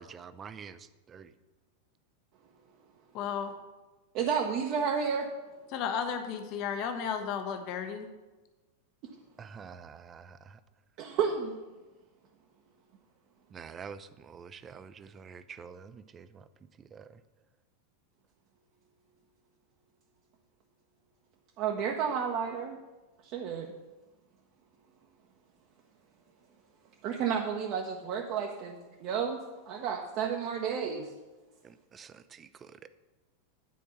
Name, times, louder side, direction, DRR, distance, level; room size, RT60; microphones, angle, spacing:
voice 1, 0.0-1.3 9.4-10.6 13.5-16.5 16.8-17.2 31.6-32.9, right 6 dB, 25° right, 13 dB, 0.5 m, -47 dB
voice 2, 3.1-3.5 5.7-8.1, left 7 dB, 40° left, 7 dB, 0.8 m, -33 dB
voice 3, 4.1-5.3 11.0-11.5 21.6-22.7 23.3-23.7 27.0-28.7 29.0-29.4 29.7-31.0, right 7 dB, 40° right, 1 dB, 0.8 m, -31 dB
9.4 x 4.6 x 6.9 m, 1.2 s
figure-of-eight pair, 90°, 0 cm